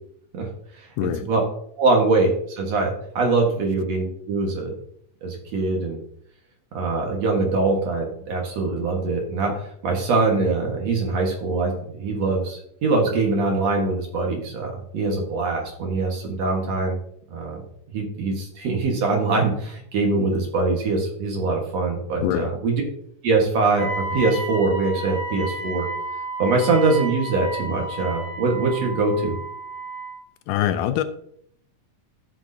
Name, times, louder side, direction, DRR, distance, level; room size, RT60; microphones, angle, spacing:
voice 1, 1.0-1.3 22.2-22.5 30.5-31.0, left 11 dB, 80° left, 10 dB, 2.0 m, -23 dB
voice 2, 1.8-2.3 2.6-4.7 5.2-6.0 6.7-17.0 17.3-17.6 17.9-22.8 23.2-25.9 26.4-29.4, right 3 dB, 55° right, 1 dB, 2.4 m, -23 dB
Wind instrument woodwind instrument, 23.8-30.2, right 2 dB, 30° right, 4.9 m, -32 dB
15.0 x 6.3 x 2.7 m, 0.68 s
omnidirectional pair, 3.9 m